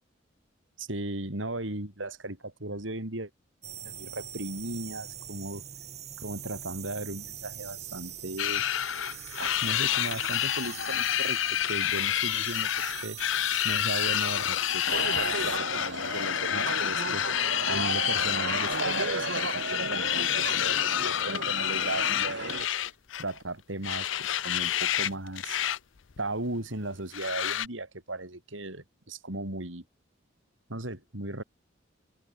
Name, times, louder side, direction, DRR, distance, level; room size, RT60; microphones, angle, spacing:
voice 1, 0.8-3.3 3.8-5.6 6.2-8.6 9.4-11.4 11.7-13.2 13.6-17.2 17.6-22.5 23.2-25.6 26.2-29.8 30.7-31.4, right 2 dB, 90° right, 5.1 m, -36 dB
sound 1, 3.6-15.6, right 10 dB, 35° right, 1.5 m, -42 dB
sound 2, 8.4-23.4 23.8-25.1 25.4-25.8 26.1-26.2 27.1-27.7, left 11 dB, 85° left, 0.6 m, -29 dB
sound 3, 14.9-22.7, right 3 dB, 70° right, 2.2 m, -35 dB
head